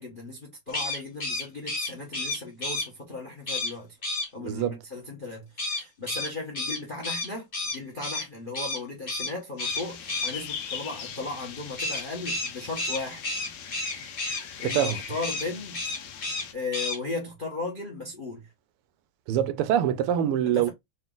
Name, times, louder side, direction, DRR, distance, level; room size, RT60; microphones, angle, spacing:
voice 1, 0.0-3.9 4.3-7.5 7.7-13.2 14.6-15.8 16.5-18.5 20.5-20.7, left 3 dB, 45° left, 0.6 m, -36 dB
sound 1, 0.7-2.9 3.5-3.7 4.0-4.3 5.6-8.2 8.5-8.8 9.1-9.3 9.6-10.3 11.8-14.4 14.7-14.9 15.2-15.5 15.7-16.4 16.7-17.0, left 2 dB, 30° left, 1.5 m, -31 dB
voice 2, 4.4-4.8 14.6-15.0 19.3-20.7, right 10 dB, 85° right, 1.5 m, -25 dB
sound 2, 9.6-16.5, left 7 dB, 65° left, 1.0 m, -41 dB
4.0 x 2.4 x 3.7 m
omnidirectional pair, 2.4 m